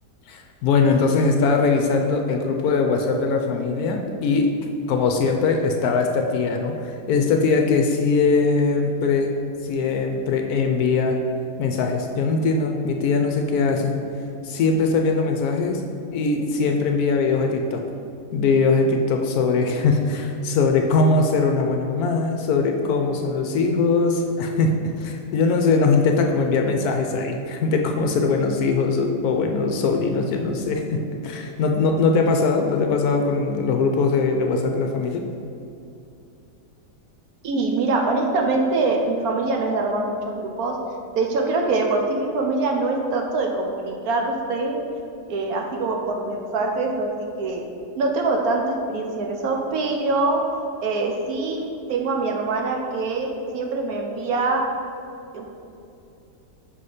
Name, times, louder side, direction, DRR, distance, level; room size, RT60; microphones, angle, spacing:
voice 1, 0.3-4.5 4.9-9.3 9.6-11.2 11.6-13.9 14.4-15.8 16.1-17.8 18.3-35.2, left 4 dB, 70° left, 3 dB, 1.0 m, -21 dB
voice 2, 37.4-40.8 41.2-44.8 45.3-47.6 48.0-50.4 50.8-54.6 55.3-55.4, right 3 dB, 70° right, 2 dB, 1.0 m, -24 dB
5.7 x 4.2 x 4.9 m, 2.6 s
omnidirectional pair, 1.8 m